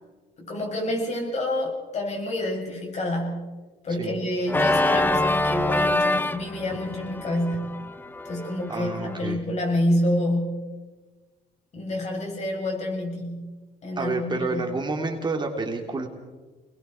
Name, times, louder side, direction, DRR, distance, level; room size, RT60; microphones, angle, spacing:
voice 1, 0.4-3.5 3.8-7.8 8.2-10.7 11.7-13.6 13.8-14.7, left 1 dB, 40° left, 1 dB, 7.3 m, -28 dB
Organ, 4.5-9.3, left 1 dB, 10° left, 0.8 m, -25 dB
voice 2, 8.7-9.4 14.0-16.1, right 3 dB, 25° right, 2 dB, 3.2 m, -29 dB
28.5 x 20.5 x 4.6 m, 1.3 s
cardioid pair, 110°, 17 cm